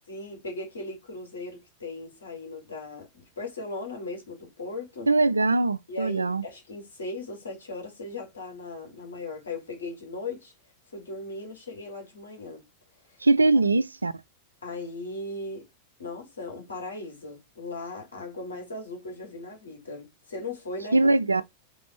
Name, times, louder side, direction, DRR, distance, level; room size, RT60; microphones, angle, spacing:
voice 1, 0.1-5.1 5.9-10.5 10.9-12.6 14.6-15.7 16.0-21.1, left 2 dB, 70° left, 2.4 m, -38 dB
voice 2, 5.1-6.4 13.2-14.1 20.9-21.4, right 2 dB, 80° right, 0.3 m, -21 dB
4.7 x 3.4 x 3.1 m
figure-of-eight pair, 90°, 0 cm